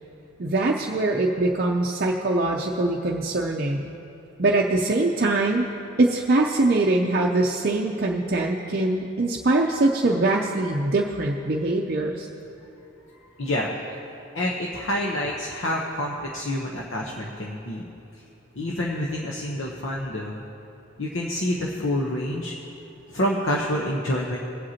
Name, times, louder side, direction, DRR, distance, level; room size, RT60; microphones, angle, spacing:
voice 1, 0.4-3.9 4.4-5.7 6.0-12.3, right 2 dB, 45° right, -1 dB, 0.5 m, -23 dB
voice 2, 13.1-13.7 14.3-17.8 18.1-18.2 18.5-20.4 21.0-22.5 23.1-24.4, left 1 dB, 70° left, -2 dB, 0.9 m, -27 dB
22.5 x 7.9 x 2.9 m, 2.9 s
head